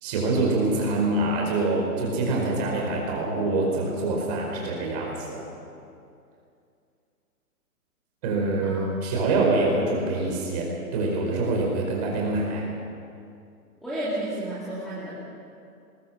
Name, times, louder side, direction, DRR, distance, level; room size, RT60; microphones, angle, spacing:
voice 1, 0.0-5.4 8.2-12.6, right 2 dB, 25° right, -2 dB, 4.8 m, -25 dB
voice 2, 13.8-15.1, right 1 dB, ahead, -12 dB, 2.6 m, -31 dB
21.0 x 20.0 x 6.5 m, 2.5 s
hypercardioid pair, 170°, 46 cm